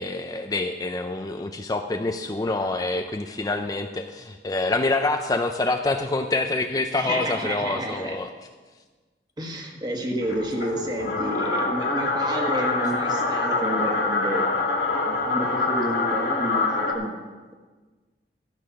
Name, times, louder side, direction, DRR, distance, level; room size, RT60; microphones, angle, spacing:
voice 1, 0.0-8.3, left 2 dB, 20° left, 6 dB, 0.4 m, -26 dB
voice 2, 6.9-8.2 9.4-14.5 15.1-17.1, right 1 dB, 25° right, 2 dB, 1.5 m, -30 dB
sound 1, 10.2-16.9, left 3 dB, 70° left, 2.3 m, -25 dB
14.0 x 7.0 x 5.8 m, 1.3 s
head